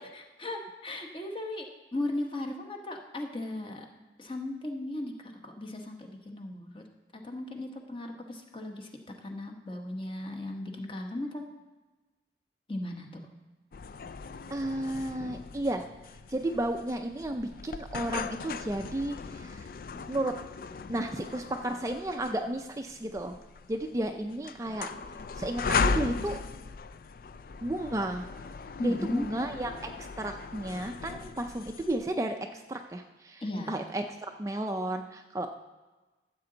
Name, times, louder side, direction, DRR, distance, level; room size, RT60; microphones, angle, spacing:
voice 1, 0.1-3.9 4.2-6.8 7.1-8.9 9.2-11.5 12.7-13.2 28.8-29.3 33.4-33.8, left 1 dB, 30° left, 3 dB, 1.0 m, -36 dB
sound 1, 13.7-32.0, left 5 dB, 50° left, 0.3 m, -37 dB
voice 2, 14.5-15.8 16.3-19.7 20.1-20.3 20.9-23.3 23.7-24.9 25.3-26.4 27.6-28.3 28.8-29.9 30.2-34.0 34.4-35.5, right 1 dB, 20° right, 5 dB, 0.4 m, -33 dB
14.0 x 7.6 x 3.9 m, 1.2 s
head